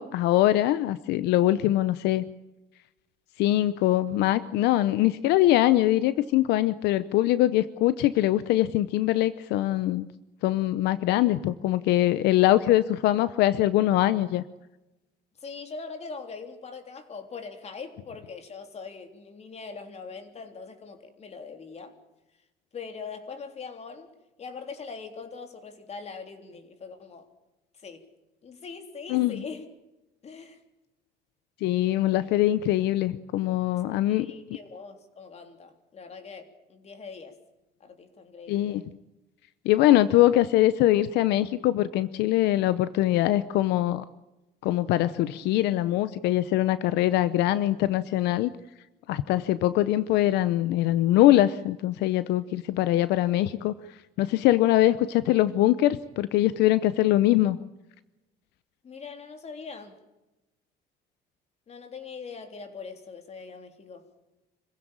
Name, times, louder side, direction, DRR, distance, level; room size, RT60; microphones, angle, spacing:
voice 1, 0.0-2.2 3.4-10.1 10.4-14.4 29.1-29.3 31.6-34.3 38.5-38.8 39.7-44.0 44.6-48.5 49.1-53.7 54.2-57.6, left 14 dB, 85° left, 15 dB, 0.8 m, -23 dB
voice 2, 15.4-21.9 22.7-24.1 24.4-27.3 27.8-28.0 28.4-29.6 30.2-30.6 34.1-37.4 37.8-38.8 58.8-59.9 61.7-64.1, left 5 dB, 40° left, 7 dB, 3.6 m, -42 dB
25.5 x 16.0 x 8.8 m, 1.0 s
cardioid pair, 110°, 17 cm